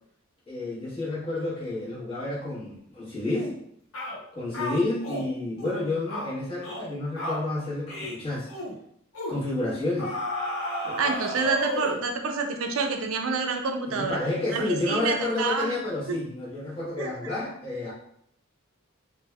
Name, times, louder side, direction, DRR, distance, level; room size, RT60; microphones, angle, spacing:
voice 1, 0.5-3.5 4.3-8.5 9.3-10.1 10.8-11.4 13.9-17.9, left 2 dB, 25° left, -9 dB, 1.1 m, -30 dB
sound 1, 3.3-3.6 3.9-4.2 4.5-5.3 5.6-5.8 6.1-6.3 6.6-6.9 7.2-7.4 7.9-8.2 8.5-8.7 9.1-9.4 10.0-12.0, left 1 dB, 70° left, 0.8 m, -33 dB
voice 2, 11.0-14.2 14.5-15.7 16.1-16.2 17.0-17.1, right 4 dB, 70° right, 4 dB, 0.4 m, -27 dB
3.3 x 2.2 x 2.2 m, 0.69 s
head